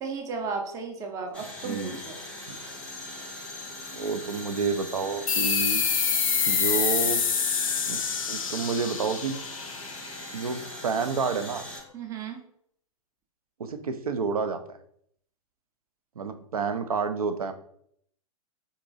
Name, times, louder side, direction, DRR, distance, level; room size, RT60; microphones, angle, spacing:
voice 1, 0.0-2.2 11.9-12.4, right 5 dB, 15° right, 2 dB, 0.5 m, -34 dB
sound 1, 1.3-11.8, left 1 dB, 5° left, 0.9 m, -40 dB
voice 2, 1.6-2.0 2.5-2.6 3.9-5.8 6.5-7.2 7.9-8.0 8.3-9.4 10.3-11.6 13.6-14.8 16.2-17.5, right 5 dB, 75° right, 8 dB, 0.5 m, -29 dB
sound 2, 5.3-10.4, left 6 dB, 65° left, 0.5 m, -26 dB
3.9 x 2.9 x 2.5 m, 0.67 s
figure-of-eight pair, 105°, 19 cm